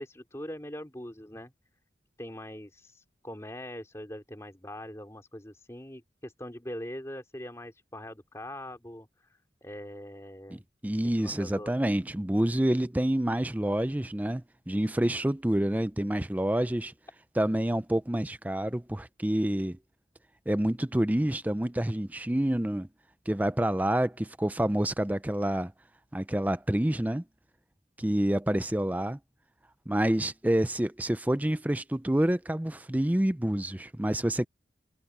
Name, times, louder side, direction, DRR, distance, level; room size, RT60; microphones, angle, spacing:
voice 1, 0.0-1.5 2.2-10.6 11.2-11.9, left 1 dB, 15° left, 3.2 m, -42 dB
voice 2, 10.5-16.9 17.4-19.8 20.5-22.9 23.3-25.7 26.1-27.2 28.0-29.2 29.9-34.5, right 1 dB, 10° right, 0.4 m, -28 dB
head